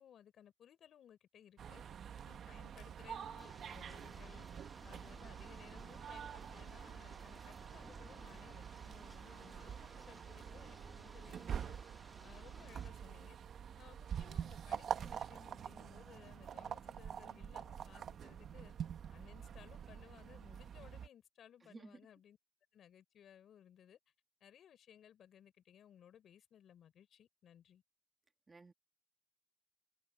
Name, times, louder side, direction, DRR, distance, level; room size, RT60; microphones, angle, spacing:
voice 1, 0.0-1.8 2.2-4.5 4.8-11.8 12.2-13.4 13.8-18.7 19.1-22.4 22.7-24.0 24.4-27.8, left 9 dB, 65° left, 4.2 m, -61 dB
sound 1, 1.6-21.1, right 8 dB, 60° right, 1.2 m, -46 dB
sound 2, 3.4-12.9, equal, ahead, 2.5 m, -59 dB
voice 2, 21.6-22.0 28.5-28.7, right 3 dB, 25° right, 2.2 m, -55 dB
open air
cardioid pair, 90°, 0 cm